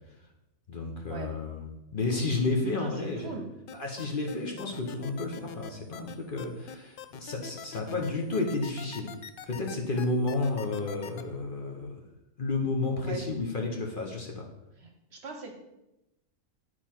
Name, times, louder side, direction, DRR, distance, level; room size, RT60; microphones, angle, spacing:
voice 1, 0.7-3.4 3.8-9.1 9.5-12.0 12.4-14.5, left 3 dB, 45° left, 1 dB, 1.0 m, -31 dB
voice 2, 2.8-3.5 13.0-13.3 14.8-15.5, right 4 dB, 55° right, 3 dB, 1.1 m, -40 dB
sound 1, 3.7-11.2, left 8 dB, 75° left, 0.5 m, -43 dB
9.5 x 4.5 x 4.4 m, 0.92 s
omnidirectional pair, 1.4 m